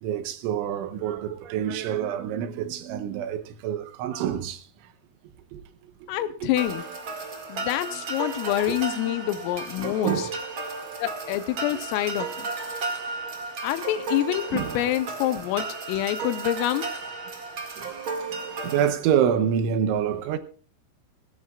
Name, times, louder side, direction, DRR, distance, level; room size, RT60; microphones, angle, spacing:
voice 1, 0.0-4.6 5.5-5.6 6.4-6.5 9.0-9.1 10.0-10.3 14.5-14.8 17.8-17.9 18.6-20.4, right 9 dB, 75° right, 3.2 m, -27 dB
voice 2, 6.1-6.9 7.5-10.3 11.0-12.5 13.6-16.9, left 13 dB, 90° left, 3.4 m, -27 dB
sound 1, 6.6-18.9, right 4 dB, 45° right, 1.7 m, -34 dB
19.0 x 17.0 x 2.4 m
omnidirectional pair, 5.8 m